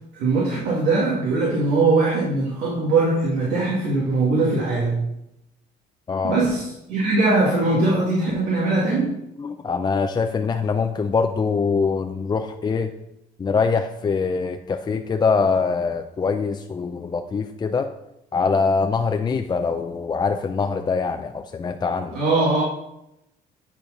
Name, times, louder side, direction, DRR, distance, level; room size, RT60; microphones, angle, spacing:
voice 1, 0.1-5.0 6.2-9.1 22.1-22.6, right 3 dB, 85° right, -4 dB, 2.1 m, -21 dB
voice 2, 6.1-6.4 9.4-12.9 13.4-17.9 18.3-22.2, left 5 dB, 25° left, 5 dB, 0.5 m, -23 dB
9.5 x 4.4 x 5.2 m, 0.85 s
cardioid pair, 110°, 17 cm